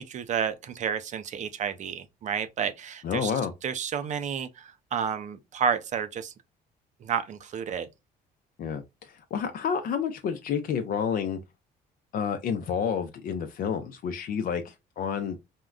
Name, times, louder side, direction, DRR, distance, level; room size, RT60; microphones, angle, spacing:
voice 1, 0.0-3.3 3.6-6.3 7.0-7.9, right 7 dB, 45° right, 0.5 m, -31 dB
voice 2, 3.0-3.5 8.6-11.4 12.1-15.4, left 7 dB, 55° left, 0.5 m, -30 dB
3.6 x 2.1 x 2.3 m
cardioid pair, 110°, 17 cm